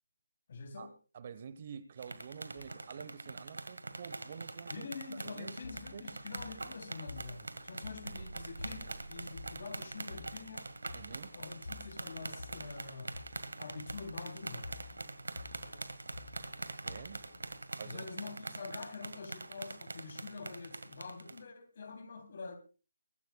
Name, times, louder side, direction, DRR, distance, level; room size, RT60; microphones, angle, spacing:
voice 1, 0.5-0.9 2.6-2.7 4.7-10.7 11.3-13.1 13.6-14.7 17.8-22.6, left 4 dB, 45° left, 3.2 m, -46 dB
voice 2, 1.1-4.9 5.3-6.0 10.9-11.3 16.8-17.2 17.8-18.1, right 7 dB, 40° right, 1.1 m, -48 dB
sound 1, 2.0-21.4, right 2 dB, 75° right, 1.8 m, -44 dB
sound 2, 5.6-17.6, left 4 dB, 65° left, 3.9 m, -52 dB
sound 3, 8.0-10.8, right 4 dB, 60° right, 0.8 m, -51 dB
24.0 x 14.5 x 2.3 m
figure-of-eight pair, 155°, 0 cm